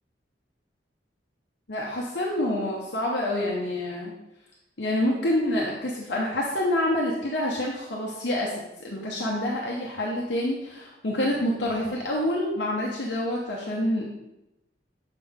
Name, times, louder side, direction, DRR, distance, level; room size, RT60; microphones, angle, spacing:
voice 1, 1.7-4.1 4.8-14.1, left 1 dB, 70° left, -3 dB, 1.0 m, -27 dB
7.6 x 4.9 x 3.6 m, 0.91 s
head